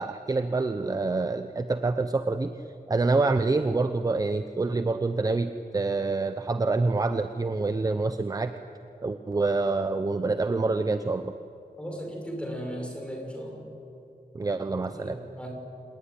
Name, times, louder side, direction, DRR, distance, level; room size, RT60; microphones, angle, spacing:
voice 1, 0.0-2.5 2.9-8.5 9.0-11.3 14.3-15.2, right 3 dB, 25° right, 9 dB, 0.7 m, -26 dB
voice 2, 11.8-13.6 14.9-15.5, equal, 5° left, 1 dB, 5.7 m, -36 dB
28.0 x 18.5 x 9.9 m, 2.7 s
wide cardioid pair, 175°, 16 cm